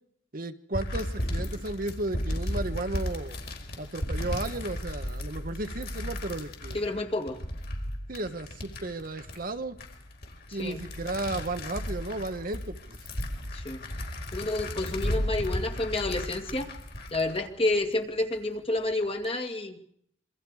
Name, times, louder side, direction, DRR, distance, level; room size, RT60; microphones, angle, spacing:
voice 1, 0.3-3.4 3.8-6.8 8.1-9.8 10.5-13.0, right 2 dB, 45° right, 8 dB, 1.2 m, -34 dB
sound 1, 0.7-18.4 18.8-19.3, left 1 dB, 55° left, 4.4 m, -35 dB
voice 2, 6.7-7.4 10.5-10.9 13.5-13.8 14.3-16.7 17.1-19.8, left 2 dB, 30° left, 5 dB, 2.3 m, -29 dB
27.0 x 24.5 x 4.9 m, 0.67 s
head